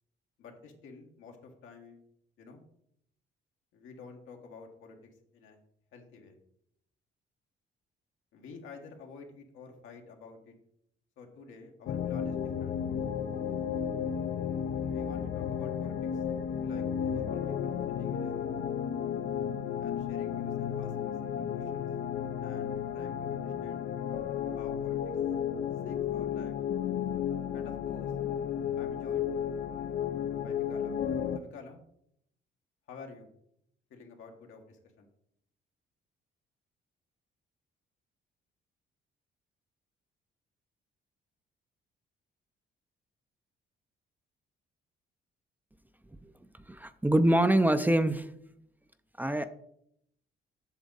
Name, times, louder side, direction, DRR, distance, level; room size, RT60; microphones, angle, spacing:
voice 1, 0.4-2.0 2.4-2.6 3.7-5.0 5.3-5.6 5.9-6.3 8.3-10.5 11.2-12.8 14.9-16.2 16.6-18.5 19.8-21.9 22.4-23.8 24.5-25.0 25.8-26.6 27.5-28.1 28.7-29.3 30.4-31.0 31.3-31.8 32.9-33.3 33.9-35.1, left 4 dB, 85° left, 2 dB, 1.6 m, -50 dB
sound 1, 11.9-31.4, left 8 dB, 60° left, 0.5 m, -33 dB
voice 2, 46.7-48.3 49.2-49.5, right 1 dB, 10° right, 11 dB, 0.5 m, -25 dB
8.1 x 6.3 x 4.0 m, 0.73 s
cardioid pair, 90°, 20 cm